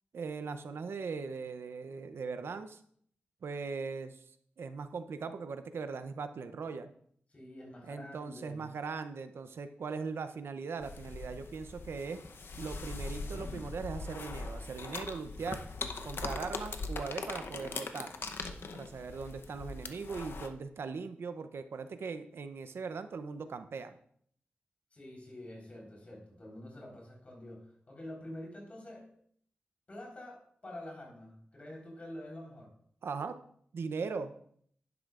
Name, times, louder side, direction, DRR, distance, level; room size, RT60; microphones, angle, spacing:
voice 1, 0.1-2.8 3.4-4.2 4.6-6.9 7.8-12.2 12.6-15.6 16.0-18.1 18.7-24.0 33.0-33.3 33.7-34.3, right 5 dB, 75° right, 10 dB, 0.6 m, -39 dB
voice 2, 7.3-8.7 24.9-29.1 29.9-32.7, left 1 dB, 35° left, -1 dB, 4.0 m, -47 dB
sound 1, 10.8-20.5, left 3 dB, 65° left, 0.8 m, -41 dB
11.0 x 10.5 x 2.5 m, 0.62 s
wide cardioid pair, 135°, 4 cm